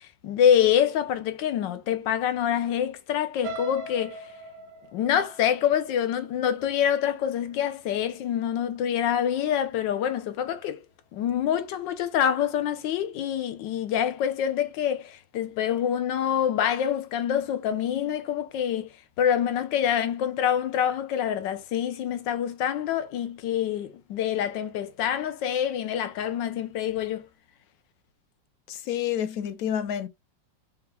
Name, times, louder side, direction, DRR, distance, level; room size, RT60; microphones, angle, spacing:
voice 1, 0.0-4.2 4.9-10.8 11.1-27.3, left 9 dB, 85° left, 1.4 m, -26 dB
sound 1, 3.4-7.4 7.9-8.2 8.5-8.6, right 2 dB, 65° right, 1.0 m, -41 dB
voice 2, 28.7-30.1, left 10 dB, 70° left, 0.9 m, -29 dB
5.6 x 2.3 x 3.2 m
omnidirectional pair, 1.9 m